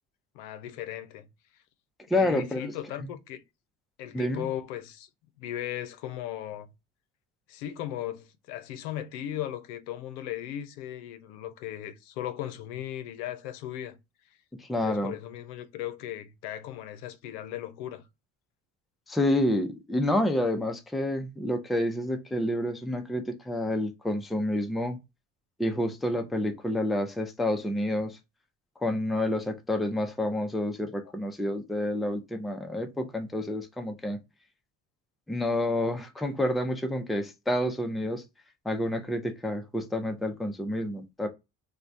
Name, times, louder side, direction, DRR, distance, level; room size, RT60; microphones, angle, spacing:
voice 1, 0.3-1.3 2.1-3.4 4.0-5.1 5.4-6.7 7.5-14.0 14.8-18.1, left 12 dB, 80° left, 0.6 m, -37 dB
voice 2, 2.1-2.7 3.0-3.1 4.1-4.5 14.6-15.1 19.1-25.0 25.6-28.2 28.8-34.2 35.3-38.2 38.6-41.3, left 1 dB, ahead, 0.4 m, -29 dB
3.0 x 2.3 x 2.5 m
hypercardioid pair, 70°, 45 cm